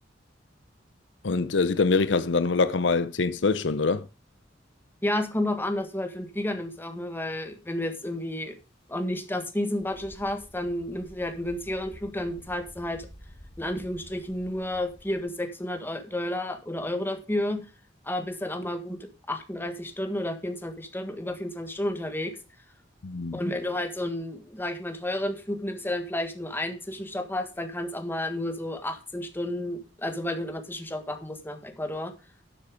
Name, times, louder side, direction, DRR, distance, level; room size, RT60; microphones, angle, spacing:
voice 1, 1.2-4.0 23.0-23.4, left 4 dB, 75° left, 0.7 m, -24 dB
voice 2, 5.0-8.6 8.9-13.1 13.6-17.7 18.0-22.4 23.3-32.1, left 1 dB, 10° left, 1.6 m, -31 dB
sound 1, 9.8-15.2, equal, 30° left, 3.1 m, -50 dB
12.0 x 6.9 x 5.1 m
head